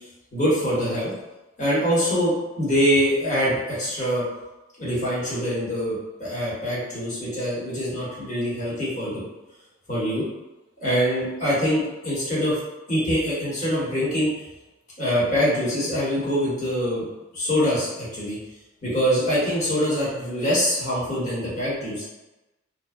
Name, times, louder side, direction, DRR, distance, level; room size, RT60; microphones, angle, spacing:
voice 1, 0.3-1.1 1.6-4.2 4.8-9.2 9.9-10.2 10.8-12.6 12.9-14.3 15.0-17.0 17.3-18.4 18.8-22.0, equal, 40° left, -8 dB, 1.0 m, -24 dB
2.6 x 2.1 x 2.4 m, 1.0 s
head